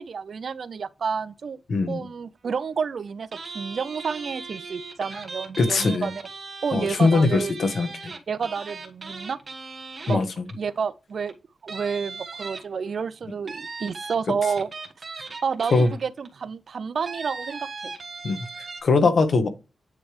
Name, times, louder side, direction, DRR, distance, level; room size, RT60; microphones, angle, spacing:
voice 1, 0.0-1.6 1.9-6.2 6.6-7.5 8.3-9.4 10.1-10.2 10.5-11.3 11.6-14.7 15.4-17.9, right 6 dB, 55° right, 0.5 m, -30 dB
voice 2, 1.7-2.0 5.6-6.1 6.7-8.1 10.1-10.4 15.7-15.9 18.2-18.4 18.8-19.5, left 3 dB, 60° left, 1.2 m, -21 dB
sound 1, 3.3-10.7 11.2-11.3 11.7-13.0 13.5-16.3 17.1-18.8, right 4 dB, 40° right, 1.4 m, -38 dB
9.6 x 3.3 x 3.4 m
wide cardioid pair, 140°, 0 cm